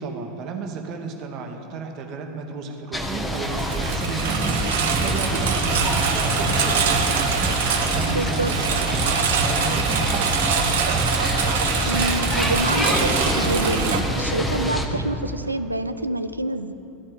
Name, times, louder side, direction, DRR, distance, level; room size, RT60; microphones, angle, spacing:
voice 1, 0.0-11.2, right 4 dB, 45° right, 3 dB, 1.0 m, -33 dB
sound 1, 2.9-14.9, equal, 5° left, 0.8 m, -27 dB
Engine, 3.3-14.0, right 6 dB, 65° right, 0.7 m, -25 dB
sound 2, 4.2-15.1, right 2 dB, 25° right, 1.5 m, -30 dB
voice 2, 8.1-8.5 11.9-16.7, right 1 dB, 90° right, 11 dB, 0.3 m, -27 dB
12.5 x 4.3 x 7.9 m, 3.0 s
figure-of-eight pair, 85°, 0 cm